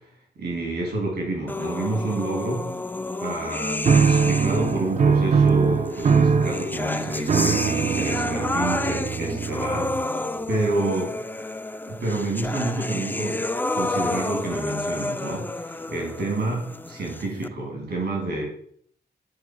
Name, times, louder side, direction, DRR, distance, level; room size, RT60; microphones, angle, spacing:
voice 1, 0.4-2.7 3.2-9.9 10.5-11.1 11.9-13.5 13.7-18.4, right 2 dB, 75° right, -1 dB, 3.0 m, -28 dB
sound 1, 1.5-4.9 5.9-17.5, left 2 dB, 10° left, 0.4 m, -30 dB
sound 2, 3.8-10.3, right 6 dB, 45° right, 0.6 m, -22 dB
9.8 x 4.5 x 4.7 m, 0.65 s
cardioid pair, 100°, 17 cm